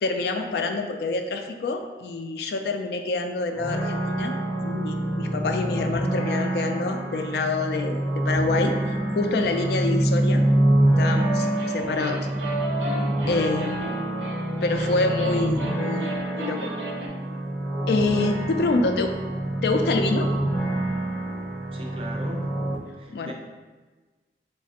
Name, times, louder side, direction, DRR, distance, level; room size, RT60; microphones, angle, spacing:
voice 1, 0.0-4.4 4.6-8.7 9.1-10.4 11.0-11.5 11.7-12.2 13.3-13.9 14.6-16.7 17.9-19.1 19.6-20.3 23.1-23.3, left 3 dB, 65° left, 5 dB, 0.3 m, -26 dB
sound 1, 3.6-22.8, right 1 dB, 15° left, 0.7 m, -26 dB
sound 2, 11.2-17.1, right 2 dB, 90° right, 0.6 m, -33 dB
voice 2, 13.4-13.9 18.7-18.9 21.7-22.5 22.9-23.3, equal, 30° right, 0 dB, 0.5 m, -39 dB
3.8 x 3.2 x 2.8 m, 1.3 s
head